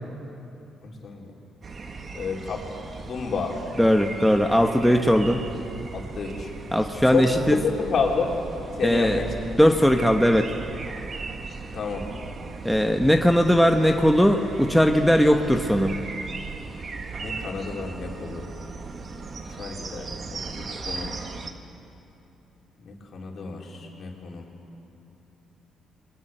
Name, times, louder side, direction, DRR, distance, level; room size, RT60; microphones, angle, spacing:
voice 1, 0.8-1.3 2.1-2.6 3.0-3.6 5.9-6.5 7.1-7.2 7.6-8.3 8.8-9.3 11.7-12.1 17.2-18.5 19.6-21.1 22.9-24.5, left 5 dB, 55° left, 0 dB, 4.2 m, -30 dB
sound 1, 1.6-21.5, right 4 dB, 45° right, 1.8 m, -37 dB
voice 2, 3.8-5.4 6.7-7.6 8.8-9.2 9.6-10.5 12.6-16.0, equal, ahead, 3 dB, 1.3 m, -19 dB
29.0 x 22.0 x 8.0 m, 2.8 s
cardioid pair, 90°, 0 cm